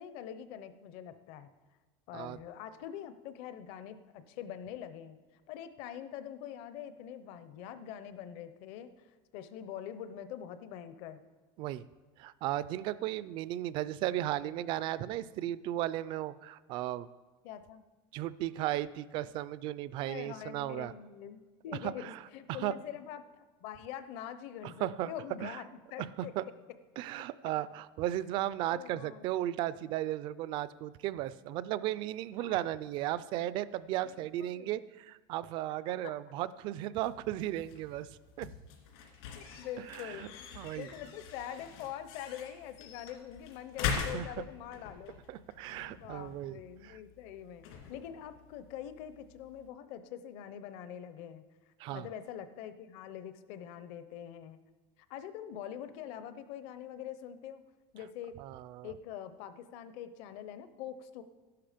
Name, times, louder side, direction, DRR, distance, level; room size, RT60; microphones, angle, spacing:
voice 1, 0.0-1.5 2.1-5.2 5.5-8.9 9.3-11.2 17.4-17.8 20.1-23.3 23.6-26.3 28.7-29.3 32.4-32.6 34.0-34.7 36.0-36.1 39.3-45.2 45.9-51.4 51.9-54.6 55.1-57.6 57.9-58.4 58.8-61.2, left 10 dB, 50° left, 12 dB, 0.8 m, -44 dB
voice 2, 12.2-17.1 18.1-20.9 21.8-22.2 22.5-22.8 24.6-25.1 25.4-25.6 26.0-26.4 27.0-38.5 39.9-40.3 40.6-40.9 44.1-44.3 45.3-47.0 51.8-52.1 58.4-58.9, right 14 dB, 40° right, 17 dB, 0.4 m, -35 dB
sound 1, 36.9-49.7, left 7 dB, 70° left, 2.6 m, -43 dB
13.0 x 11.5 x 5.1 m, 1.3 s
cardioid pair, 170°, 13 cm